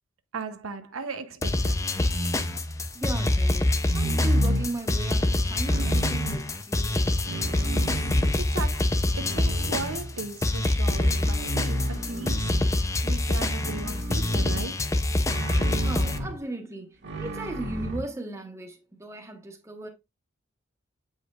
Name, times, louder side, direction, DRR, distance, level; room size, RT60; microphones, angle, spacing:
voice 1, 0.3-1.9 8.5-8.8 9.1-14.9, right 4 dB, 90° right, 0.8 m, -37 dB
sound 1, 1.4-16.2, left 1 dB, 15° left, 0.5 m, -26 dB
sound 2, 1.9-2.9 3.8-4.8 5.7-6.4 7.1-8.5 9.2-10.3 10.9-12.8 13.6-14.7 15.3-16.4 17.0-18.0, right 1 dB, 55° right, 1.8 m, -31 dB
voice 2, 2.9-7.2 15.8-19.9, right 2 dB, 15° right, 1.2 m, -37 dB
8.1 x 5.3 x 2.4 m
head